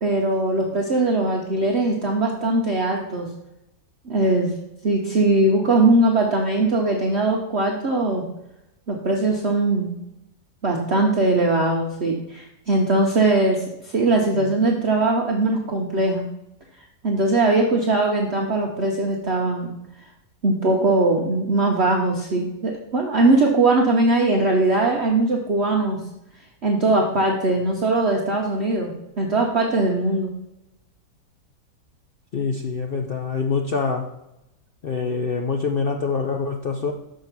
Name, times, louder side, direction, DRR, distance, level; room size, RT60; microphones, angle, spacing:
voice 1, 0.0-3.3 4.1-4.5 4.8-8.2 8.9-9.9 10.6-16.2 17.0-19.7 20.4-26.0 26.6-30.3, right 2 dB, 50° right, 0 dB, 1.0 m, -20 dB
voice 2, 32.3-34.1 34.8-36.9, left 5 dB, 70° left, 2 dB, 0.5 m, -25 dB
6.7 x 4.8 x 6.0 m, 0.86 s
omnidirectional pair, 1.8 m